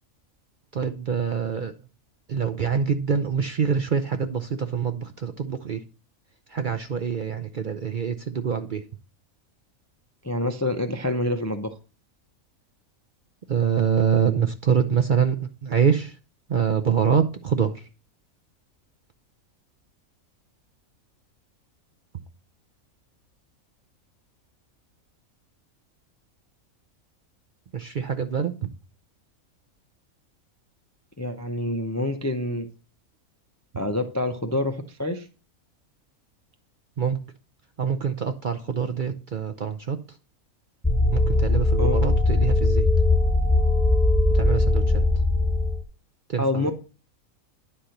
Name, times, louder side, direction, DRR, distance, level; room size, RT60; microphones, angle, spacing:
voice 1, 0.7-1.7 2.3-5.8 6.5-8.8 13.5-16.2 16.5-17.9 27.7-28.7 37.0-37.2 37.8-40.0 41.1-42.9 44.3-45.0 46.3-46.7, right 7 dB, 50° right, 0.6 m, -25 dB
voice 2, 10.2-11.7 31.2-32.7 33.8-35.3 41.8-42.1 46.4-46.7, left 1 dB, 20° left, 0.4 m, -27 dB
sound 1, 40.8-45.8, left 2 dB, ahead, 1.2 m, -20 dB
10.0 x 4.4 x 6.4 m
omnidirectional pair, 1.5 m